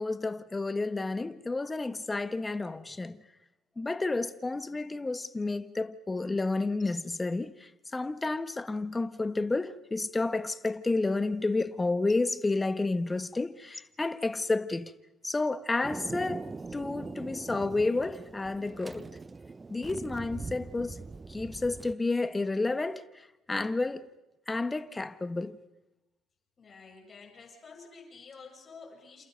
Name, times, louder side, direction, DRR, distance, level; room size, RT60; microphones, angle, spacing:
voice 1, 0.0-3.2 3.8-14.9 15.2-19.1 19.7-21.0 21.3-24.1 24.5-25.6, left 3 dB, 20° left, 1.4 m, -31 dB
Thunder, 15.8-21.9, right 3 dB, 25° right, 0.8 m, -42 dB
voice 2, 26.6-29.2, left 4 dB, 40° left, 7.7 m, -50 dB
28.5 x 28.0 x 5.3 m
hypercardioid pair, 60°, 0 cm